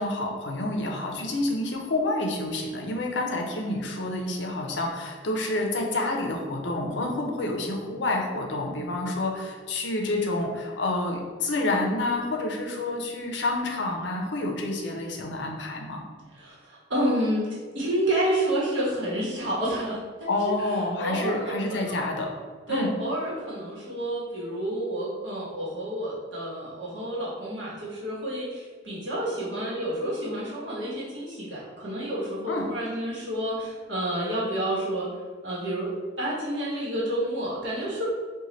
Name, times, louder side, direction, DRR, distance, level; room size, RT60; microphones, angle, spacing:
voice 1, 0.0-16.0 20.3-22.3 22.7-22.9 32.5-32.7, left 2 dB, 65° left, 1 dB, 0.5 m, -28 dB
voice 2, 16.3-20.3 21.0-22.2 22.7-35.1 35.4-38.1, right 1 dB, 65° right, -6 dB, 1.0 m, -29 dB
3.1 x 2.2 x 3.8 m, 1.5 s
head